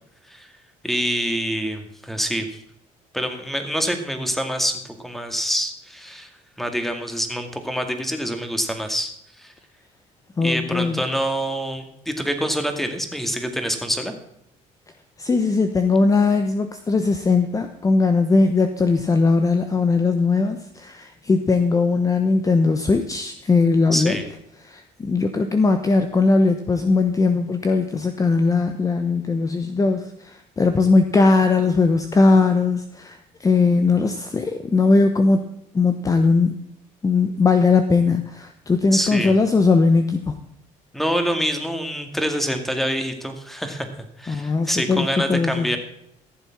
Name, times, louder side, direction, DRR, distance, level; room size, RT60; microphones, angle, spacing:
voice 1, 0.8-2.6 3.1-6.3 6.6-9.1 9.4-9.5 10.4-14.1 23.9-24.2 38.9-39.3 40.9-43.9 44.2-45.8, equal, ahead, 6 dB, 2.1 m, -26 dB
voice 2, 10.4-11.0 15.2-24.2 24.7-35.4 35.7-36.5 37.0-40.4 44.3-45.8, left 3 dB, 25° left, 7 dB, 1.0 m, -19 dB
14.5 x 7.2 x 5.9 m, 0.74 s
cardioid pair, 100°, 14 cm